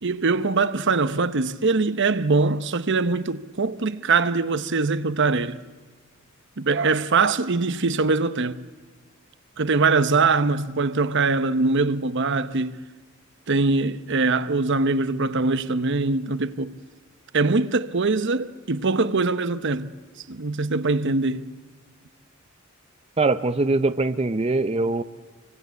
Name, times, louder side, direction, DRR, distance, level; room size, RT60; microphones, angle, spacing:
voice 1, 0.0-5.6 6.6-8.6 9.6-12.8 13.5-16.8 17.3-19.9 20.3-21.5, right 3 dB, 60° right, 0.9 m, -22 dB
voice 2, 23.2-25.0, right 3 dB, 30° right, 0.7 m, -22 dB
27.5 x 24.0 x 8.2 m
head